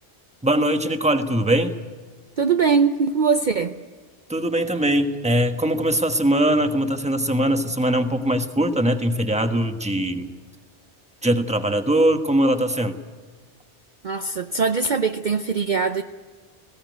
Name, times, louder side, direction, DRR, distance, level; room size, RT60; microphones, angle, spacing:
voice 1, 0.4-1.8 4.3-10.3 11.2-13.0, right 1 dB, 5° right, 6 dB, 1.2 m, -21 dB
voice 2, 2.4-3.8 14.0-16.0, right 5 dB, 45° right, 7 dB, 0.8 m, -21 dB
19.5 x 17.0 x 9.3 m, 1.5 s
omnidirectional pair, 1.2 m